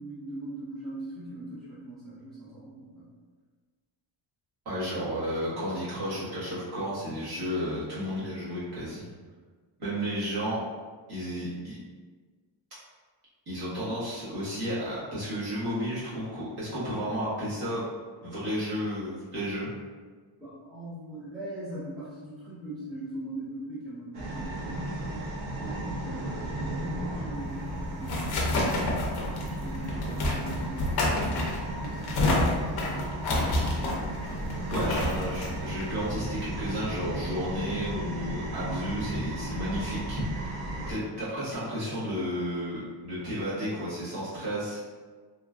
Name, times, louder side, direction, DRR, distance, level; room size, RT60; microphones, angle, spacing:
voice 1, 0.0-3.1 20.4-24.9 25.5-33.0, right 1 dB, ahead, -11 dB, 0.4 m, -41 dB
voice 2, 4.6-9.0 9.8-10.6 11.1-11.8 13.5-17.9 18.2-19.7 34.7-40.5 40.9-44.9, equal, 50° right, -10 dB, 1.3 m, -32 dB
sound 1, 24.1-40.9, right 1 dB, 75° right, 0.8 m, -35 dB
sound 2, 27.4-36.7, left 2 dB, 50° left, 0.6 m, -29 dB
3.0 x 2.2 x 2.4 m, 1.4 s
cardioid pair, 170°, 49 cm